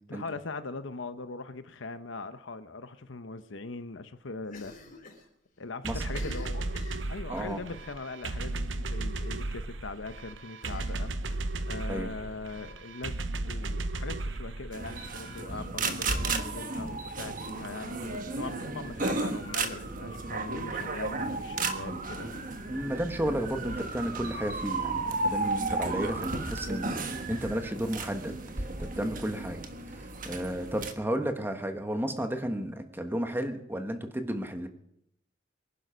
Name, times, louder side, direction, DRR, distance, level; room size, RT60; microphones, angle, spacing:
voice 1, 0.1-4.7 5.6-11.1 11.6-13.2 13.4-22.5, left 3 dB, 75° left, 11 dB, 1.0 m, -40 dB
Cough, 4.5-5.3 5.5-5.6 6.0-7.6 8.2-8.5 8.8-8.9 9.3-9.4 10.6-11.9, left 3 dB, 45° left, 4.7 m, -48 dB
sound 1, 5.8-15.4, right 2 dB, 70° right, 1.0 m, -35 dB
sound 2, 14.7-30.9, right 3 dB, 45° right, 1.2 m, -34 dB
voice 2, 22.7-28.3 28.8-29.6 29.9-34.7, equal, 10° right, 6 dB, 1.5 m, -33 dB
24.0 x 11.0 x 5.2 m, 0.76 s
head